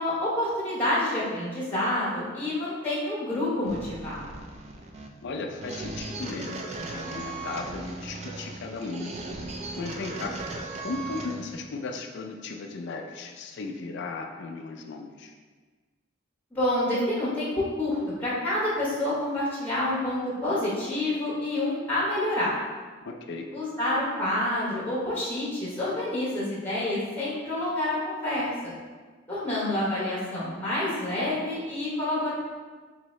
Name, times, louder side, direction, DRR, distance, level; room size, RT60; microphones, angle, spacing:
voice 1, 0.0-4.2 16.5-22.5 23.5-28.7 29.3-32.3, left 1 dB, 10° left, -8 dB, 0.9 m, -28 dB
sound 1, 3.7-11.6, right 3 dB, 35° right, 0.3 m, -38 dB
voice 2, 5.2-9.1 9.8-10.4 10.8-15.3 23.0-23.5, left 3 dB, 60° left, 3 dB, 0.4 m, -36 dB
4.0 x 2.7 x 3.1 m, 1.4 s
head